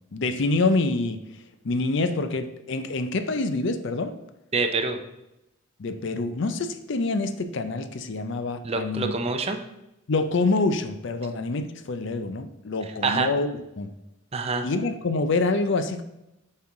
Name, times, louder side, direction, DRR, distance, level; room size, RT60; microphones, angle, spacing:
voice 1, 0.1-1.2 1.6-4.1 5.8-9.1 10.1-13.9 14.6-16.0, left 3 dB, 55° left, 9 dB, 0.5 m, -26 dB
voice 2, 4.5-5.0 8.6-9.6 13.0-13.3 14.3-14.7, right 4 dB, 30° right, 6 dB, 0.5 m, -26 dB
7.0 x 4.5 x 3.7 m, 0.89 s
head